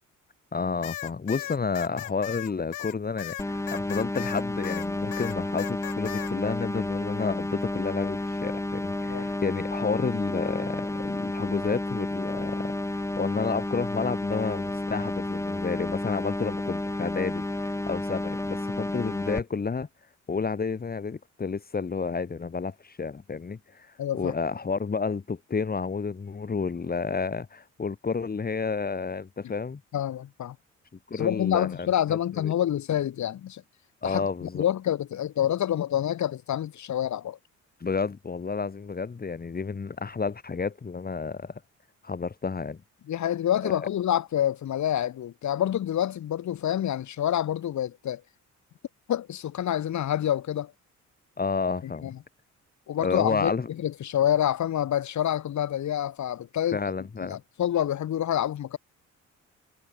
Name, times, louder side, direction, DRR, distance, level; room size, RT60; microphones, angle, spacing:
voice 1, 0.5-12.7 13.2-19.9 20.3-29.8 31.1-32.5 34.0-34.6 37.8-41.6 42.0-42.8 43.6-43.9 51.4-52.1 53.0-53.7 56.7-57.4, left 5 dB, 30° left, 2.4 m, -31 dB
sound 1, 0.8-4.9 5.1-6.3, left 15 dB, 90° left, 6.1 m, -37 dB
sound 2, 3.4-19.4, left 1 dB, 10° left, 2.1 m, -31 dB
voice 2, 24.0-24.3 29.4-29.5 29.9-30.6 31.1-33.6 34.0-37.4 43.1-48.2 49.1-50.7 51.8-52.1 52.9-56.8 57.2-58.8, left 11 dB, 70° left, 5.1 m, -27 dB
cardioid pair, 90°, 30 cm